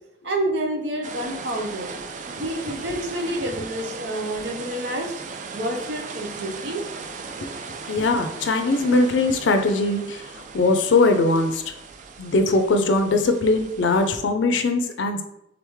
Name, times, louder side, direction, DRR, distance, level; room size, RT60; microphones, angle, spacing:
voice 1, 0.2-1.9 2.3-5.1 5.5-6.8, right 1 dB, 70° right, 1 dB, 0.8 m, -28 dB
sound 1, 1.0-14.2, right 5 dB, 45° right, 0.3 m, -38 dB
voice 2, 7.9-10.2 10.5-11.7 12.2-15.2, left 3 dB, 80° left, 6 dB, 0.4 m, -21 dB
3.7 x 3.5 x 3.1 m, 0.83 s
head